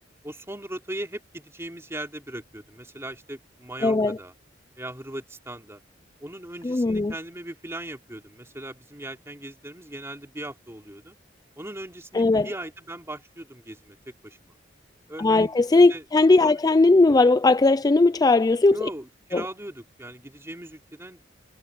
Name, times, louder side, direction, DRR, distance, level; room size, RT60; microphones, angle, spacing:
voice 1, 0.2-4.3 4.8-5.8 6.2-11.2 11.6-14.0 14.2-14.5 15.1-15.5 15.9-16.0 16.4-16.6 18.7-21.2, right 1 dB, 15° right, 3.3 m, -38 dB
voice 2, 3.8-4.2 6.6-7.1 12.1-12.5 15.2-18.9 19.3-19.5, left 3 dB, 20° left, 0.4 m, -18 dB
head